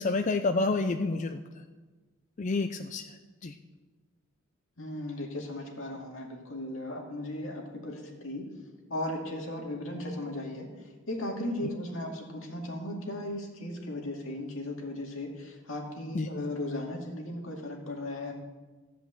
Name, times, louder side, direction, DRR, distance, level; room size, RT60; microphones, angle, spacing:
voice 1, 0.0-1.4 2.4-3.2 3.4-3.5 16.1-16.3, left 3 dB, 40° left, 7 dB, 0.4 m, -28 dB
voice 2, 4.8-8.5 8.9-10.7 11.1-18.3, left 1 dB, 85° left, 0 dB, 2.2 m, -36 dB
13.5 x 5.1 x 7.8 m, 1.3 s
head